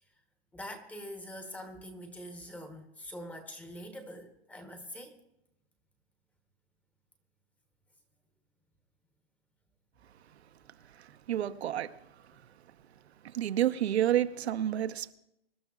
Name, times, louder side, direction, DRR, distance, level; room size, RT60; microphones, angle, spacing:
voice 1, 0.5-5.2, equal, 5° left, 0.9 m, -44 dB
voice 2, 11.0-11.9 13.2-15.1, right 11 dB, 75° right, 0.9 m, -29 dB
25.0 x 12.0 x 2.4 m
hypercardioid pair, 155°, 33 cm